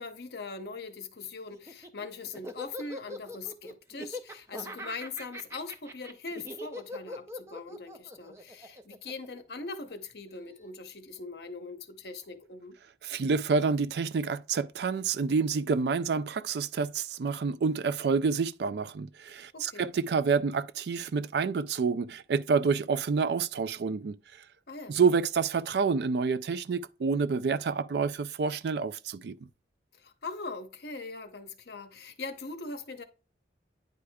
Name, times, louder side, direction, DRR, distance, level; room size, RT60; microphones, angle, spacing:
voice 1, 0.0-12.8 19.5-19.9 24.7-25.0 29.9-33.0, left 3 dB, 65° left, 0.8 m, -41 dB
Laughter, 1.5-9.9, left 1 dB, 15° right, 0.5 m, -42 dB
voice 2, 13.0-24.2 24.9-29.3, right 5 dB, 65° right, 0.4 m, -28 dB
9.4 x 4.9 x 2.3 m
head